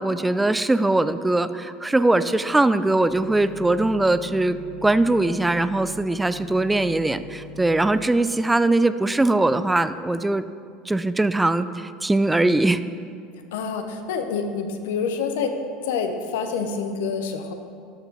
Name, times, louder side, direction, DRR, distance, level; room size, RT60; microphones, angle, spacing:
voice 1, 0.0-10.4 10.9-12.8, right 2 dB, 10° right, 13 dB, 0.3 m, -21 dB
sound 1, 3.0-8.0, left 3 dB, 45° left, 1.8 m, -42 dB
voice 2, 13.5-15.5 15.8-17.5, left 5 dB, 85° left, 6 dB, 0.8 m, -27 dB
13.0 x 6.0 x 4.0 m, 2.4 s
supercardioid pair, 100°, 0 cm